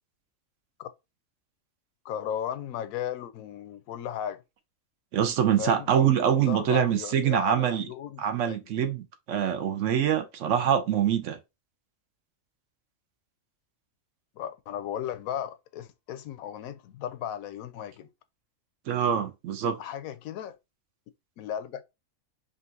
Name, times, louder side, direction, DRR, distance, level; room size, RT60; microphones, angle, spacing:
voice 1, 2.0-4.4 5.6-5.9 6.5-8.6 14.4-18.1 19.8-20.6 21.4-21.8, left 10 dB, 85° left, 1.0 m, -35 dB
voice 2, 5.1-7.9 8.2-11.4 18.9-19.8, right 9 dB, 70° right, 0.9 m, -25 dB
5.2 x 2.5 x 2.6 m
omnidirectional pair, 1.4 m